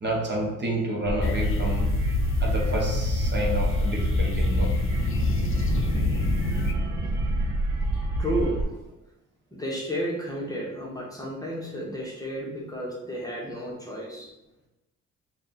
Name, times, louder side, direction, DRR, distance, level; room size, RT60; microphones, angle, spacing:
voice 1, 0.0-2.0 2.4-4.9, right 1 dB, 35° right, -1 dB, 0.9 m, -29 dB
sound 1, 1.0-8.6, right 1 dB, 80° right, 0.8 m, -28 dB
sound 2, 1.2-6.7, left 3 dB, 45° left, 0.5 m, -27 dB
voice 2, 8.2-8.7 9.5-14.3, equal, 10° left, -3 dB, 1.1 m, -32 dB
3.5 x 2.4 x 4.1 m, 0.96 s
cardioid pair, 90°, 30 cm